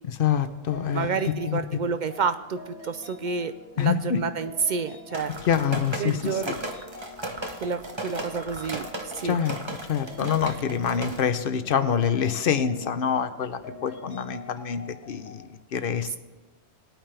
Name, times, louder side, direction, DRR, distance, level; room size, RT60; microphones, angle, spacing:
voice 1, 0.1-1.1 1.5-1.8 3.8-4.2 5.5-6.6 9.2-9.6 9.9-16.2, left 7 dB, 55° left, 10 dB, 0.9 m, -26 dB
sound 1, 0.7-15.5, left 2 dB, 90° left, 2.3 m, -45 dB
voice 2, 0.9-5.3 6.0-6.5 7.6-8.9 9.1-9.4, right 5 dB, 55° right, 11 dB, 0.5 m, -29 dB
sound 2, 5.1-11.2, right 2 dB, 25° right, 1.1 m, -36 dB
19.5 x 9.0 x 3.4 m, 1.1 s
omnidirectional pair, 1.1 m